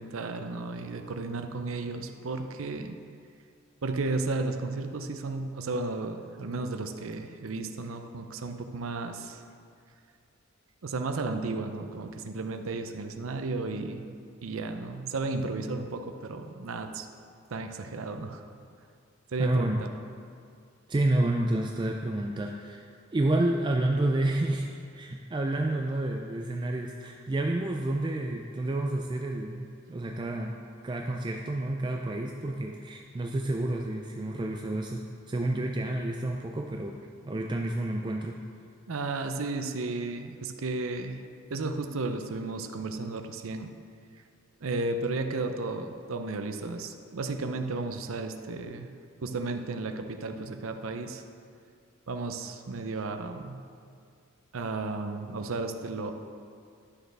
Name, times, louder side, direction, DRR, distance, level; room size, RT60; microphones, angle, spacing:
voice 1, 0.0-3.0 3.8-9.4 10.8-14.1 14.4-17.1 17.5-18.4 19.3-19.9 38.9-41.2 41.5-43.7 44.6-48.9 49.2-51.2 52.1-53.6 54.5-56.1, right 3 dB, 80° right, 7 dB, 0.6 m, -33 dB
voice 2, 19.4-19.8 20.9-22.8 23.1-30.6 30.8-37.0 37.3-38.4, right 1 dB, 20° right, 2 dB, 0.3 m, -29 dB
11.0 x 6.5 x 3.4 m, 2.3 s
head